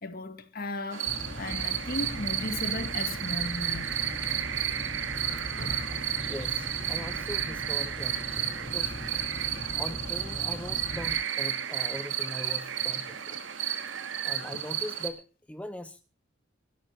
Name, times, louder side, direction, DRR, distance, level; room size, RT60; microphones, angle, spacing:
voice 1, 0.0-3.9 5.2-6.0, left 2 dB, 50° left, 2.0 m, -36 dB
sound 1, 0.9-15.1, right 10 dB, 90° right, 2.7 m, -33 dB
sound 2, 1.0-11.2, left 1 dB, 30° left, 2.8 m, -40 dB
sound 3, 1.4-15.0, right 9 dB, 75° right, 0.6 m, -39 dB
voice 2, 6.3-8.9 9.8-13.4 13.8-13.9 14.2-16.0, left 1 dB, 5° left, 0.8 m, -41 dB
27.5 x 13.5 x 2.6 m
head